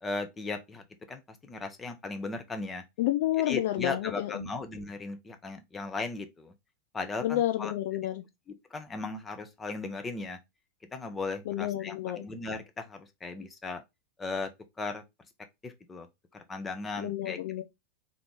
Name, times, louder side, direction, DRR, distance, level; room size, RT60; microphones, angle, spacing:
voice 1, 0.0-2.9 3.5-6.5 6.9-7.7 8.7-10.4 10.9-13.8 14.2-14.5 14.8-15.0 15.6-16.1 16.3-17.4, left 3 dB, 15° left, 0.7 m, -37 dB
voice 2, 3.0-4.5 7.2-8.2 11.5-12.3 17.0-17.6, left 14 dB, 50° left, 0.5 m, -30 dB
3.6 x 2.9 x 3.7 m
figure-of-eight pair, 90°, 0 cm